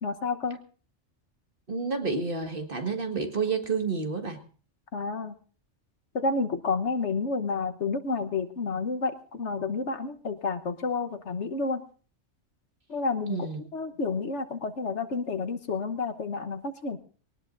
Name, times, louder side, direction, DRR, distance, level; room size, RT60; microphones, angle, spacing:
voice 1, 0.0-0.6 4.9-5.3 6.1-11.8 12.9-17.0, left 4 dB, 70° left, 8 dB, 1.4 m, -30 dB
voice 2, 1.7-4.4 13.3-13.6, right 4 dB, 45° right, 5 dB, 2.0 m, -29 dB
22.0 x 19.0 x 2.6 m, 0.40 s
omnidirectional pair, 1.2 m